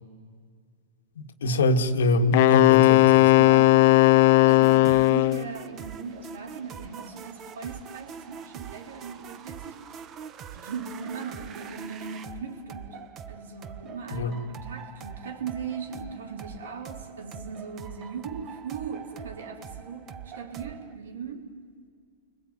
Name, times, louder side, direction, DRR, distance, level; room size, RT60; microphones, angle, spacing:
voice 1, 1.2-3.3 14.1-14.4, left 2 dB, 80° left, 7 dB, 2.0 m, -24 dB
Wind instrument woodwind instrument, 2.3-5.5, left 18 dB, 55° left, 0.6 m, -17 dB
voice 2, 3.4-9.9 10.5-13.0 13.3-21.5, right 5 dB, 80° right, 5 dB, 4.2 m, -39 dB
sound 1, 4.5-21.0, right 7 dB, 30° right, 1.4 m, -43 dB
29.5 x 21.0 x 9.5 m, 2.1 s
hypercardioid pair, 135°, 0 cm